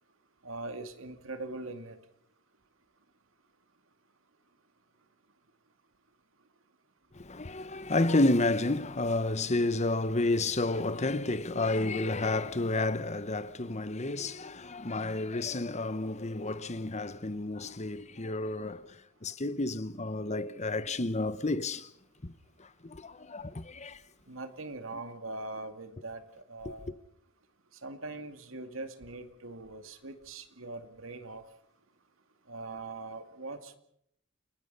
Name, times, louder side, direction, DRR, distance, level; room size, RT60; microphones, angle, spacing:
voice 1, 0.4-2.0 24.3-26.2 26.5-26.9 27.8-31.4 32.5-33.8, right 2 dB, 85° right, 2.4 m, -41 dB
voice 2, 7.1-18.9 19.2-21.9 22.2-22.3 22.8-24.0, left 2 dB, 35° left, 1.1 m, -30 dB
29.5 x 20.0 x 5.6 m
head